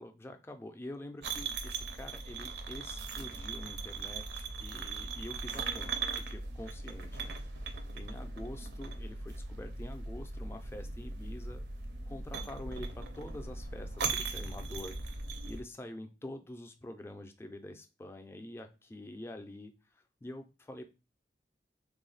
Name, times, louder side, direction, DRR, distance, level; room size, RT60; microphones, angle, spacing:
voice 1, 0.0-11.7 12.1-20.9, left 1 dB, 15° left, 6 dB, 0.3 m, -46 dB
sound 1, 1.2-15.6, right 4 dB, 70° right, 0.5 m, -39 dB
3.0 x 2.0 x 3.9 m, 0.30 s
head